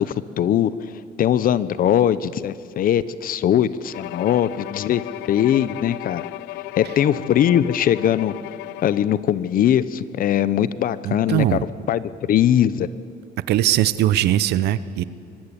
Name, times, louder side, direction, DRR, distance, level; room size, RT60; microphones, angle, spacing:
voice 1, 0.0-5.0 5.3-6.3 6.8-8.3 8.8-11.6 11.9-12.9, left 10 dB, 55° left, 17 dB, 0.9 m, -20 dB
Bowed string instrument, 3.9-9.3, left 19 dB, 85° left, 0.5 m, -35 dB
voice 2, 11.0-11.6 13.5-15.0, right 13 dB, 75° right, 16 dB, 0.9 m, -20 dB
24.0 x 16.5 x 10.0 m, 2.5 s
cardioid pair, 110°, 17 cm